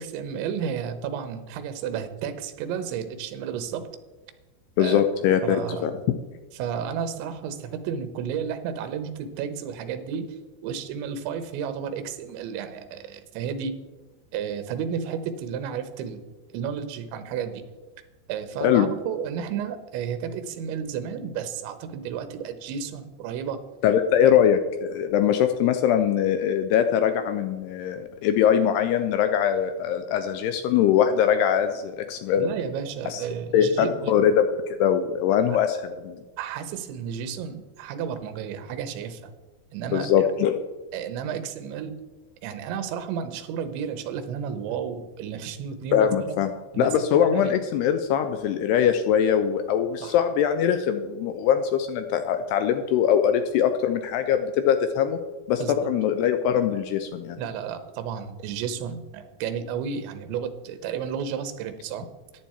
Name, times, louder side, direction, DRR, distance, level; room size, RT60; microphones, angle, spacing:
voice 1, 0.0-3.9 4.8-5.0 5.4-5.9 6.5-13.8 14.3-16.2 16.5-17.6 18.3-23.6 24.2-24.3 32.4-34.1 36.4-39.3 39.7-40.3 40.9-42.0 42.4-46.4 46.7-47.6 50.0-50.1 55.6-55.9 57.4-62.1, right 7 dB, 80° right, 10 dB, 3.3 m, -32 dB
voice 2, 4.8-5.9 18.6-18.9 23.8-32.5 33.1-33.2 33.5-36.2 39.9-40.5 45.9-46.5 46.8-55.2 55.5-57.4, left 9 dB, 85° left, 8 dB, 2.4 m, -22 dB
14.5 x 10.5 x 4.4 m, 1.2 s
omnidirectional pair, 5.4 m